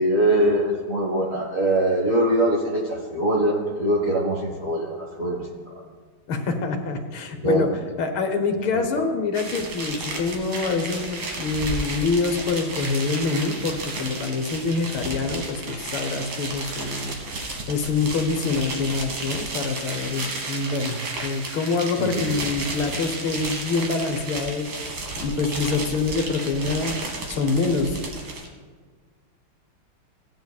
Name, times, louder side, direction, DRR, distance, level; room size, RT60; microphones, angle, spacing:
voice 1, 0.0-5.5 7.4-7.6 8.7-8.9 22.0-22.2, right 1 dB, 45° right, -3 dB, 1.5 m, -22 dB
voice 2, 6.3-7.7 8.0-27.0 27.3-28.0, left 4 dB, 75° left, 5 dB, 1.7 m, -26 dB
sound 1, 9.3-28.5, right 2 dB, 65° right, 2.1 m, -33 dB
16.5 x 9.6 x 2.3 m, 1.5 s
omnidirectional pair, 2.3 m